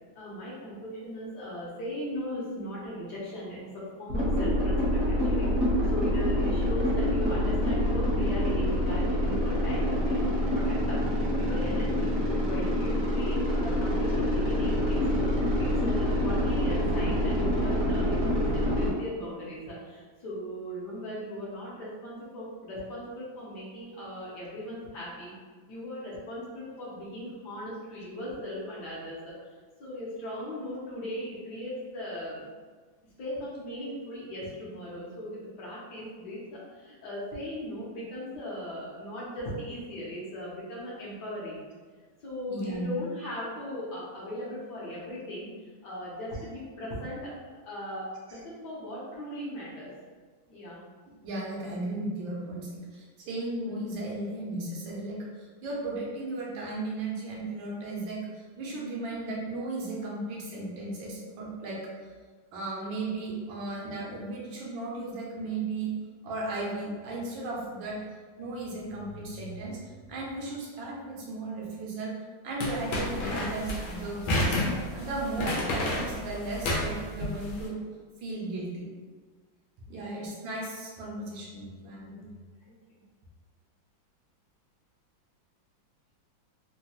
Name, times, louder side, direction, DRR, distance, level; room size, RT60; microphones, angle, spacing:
voice 1, 0.1-15.3 15.6-25.3 25.7-32.4 33.2-41.6 42.2-49.9 50.5-50.8 79.9-80.0 82.6-82.7, left 1 dB, 65° left, -7 dB, 1.4 m, -38 dB
sound 1, 4.1-18.9, equal, 55° right, 1.0 m, -26 dB
voice 2, 42.5-43.0 51.2-61.8 62.5-66.0 66.2-68.0 68.4-72.1 72.4-74.6 74.9-77.8 78.2-78.9 79.9-82.3, right 2 dB, 80° right, -3 dB, 1.5 m, -35 dB
walking fast on squeaky floor, 72.6-77.6, left 1 dB, 85° left, 1.5 m, -30 dB
3.8 x 2.2 x 2.8 m, 1.5 s
omnidirectional pair, 2.2 m